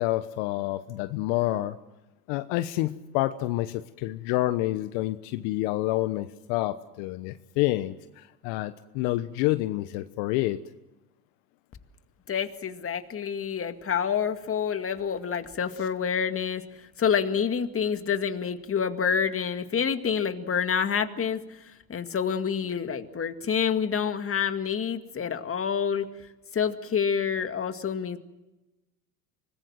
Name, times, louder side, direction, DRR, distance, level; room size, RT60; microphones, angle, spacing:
voice 1, 0.0-1.8 2.3-10.6, left 17 dB, 65° left, 11 dB, 1.2 m, -28 dB
voice 2, 12.3-16.6 17.0-21.6 21.9-26.1 26.5-28.2, left 7 dB, 30° left, 8 dB, 2.1 m, -27 dB
25.0 x 20.0 x 7.7 m, 1.0 s
hypercardioid pair, 85°, 46 cm